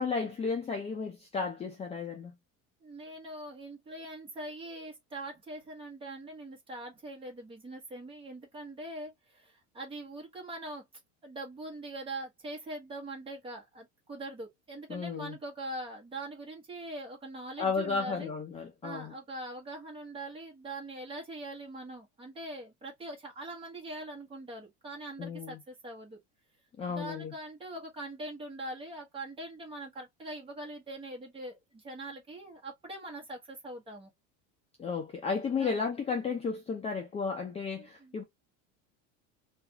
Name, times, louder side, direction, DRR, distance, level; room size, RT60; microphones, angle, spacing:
voice 1, 0.0-2.4 14.9-15.3 17.6-19.1 25.2-25.6 26.8-27.3 34.8-38.2, left 5 dB, 20° left, 0.5 m, -33 dB
voice 2, 2.8-10.8 11.2-18.3 18.8-26.2 26.9-34.1 35.6-35.7 37.8-38.2, right 1 dB, 15° right, 1.2 m, -42 dB
3.2 x 2.5 x 2.8 m
cardioid pair, 150°, 33 cm